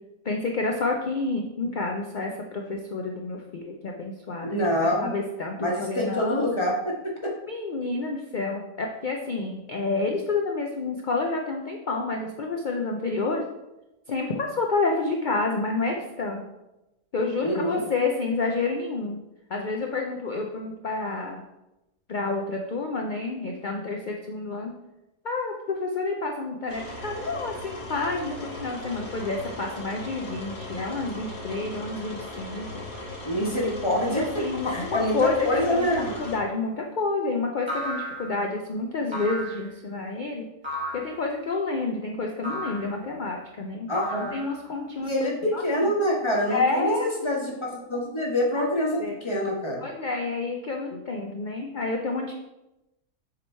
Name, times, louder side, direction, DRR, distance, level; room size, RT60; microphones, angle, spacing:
voice 1, 0.2-6.4 7.5-13.4 14.1-16.4 17.1-19.2 19.5-21.5 22.1-24.7 25.2-32.8 34.1-35.9 36.2-40.5 40.9-45.9 46.5-47.1 48.6-48.7 49.0-49.2 49.8-52.3, left 3 dB, 80° left, 1 dB, 0.4 m, -29 dB
voice 2, 4.4-5.1 5.6-7.1 17.4-17.8 33.2-34.2 34.7-36.1 43.9-44.4 45.0-49.8, left 1 dB, 20° left, -3 dB, 1.1 m, -26 dB
sound 1, 26.7-36.4, left 2 dB, 55° left, 1.7 m, -38 dB
sound 2, 36.0-36.4 37.7-38.5 39.1-39.7 40.6-41.2 42.4-42.9 43.9-44.7, equal, 20° right, 1.2 m, -34 dB
7.4 x 3.1 x 4.4 m, 0.95 s
omnidirectional pair, 1.5 m